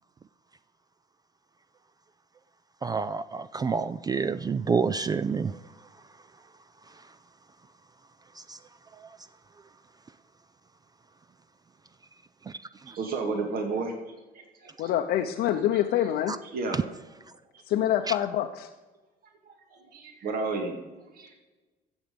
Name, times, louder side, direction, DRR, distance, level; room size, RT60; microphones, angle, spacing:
voice 1, 2.8-5.5 8.5-8.6 16.3-16.4 18.1-18.2, right 5 dB, 25° right, 14 dB, 0.3 m, -28 dB
voice 2, 12.9-14.1 14.6-14.9 15.7-15.8 16.4-16.8 17.5-17.6 19.5-20.8 21.1-21.4, right 3 dB, 60° right, 3 dB, 2.1 m, -32 dB
voice 3, 14.8-16.3 17.7-18.7, left 11 dB, 75° left, 3 dB, 0.7 m, -26 dB
14.5 x 7.3 x 5.2 m, 1.2 s
cardioid pair, 110°, 17 cm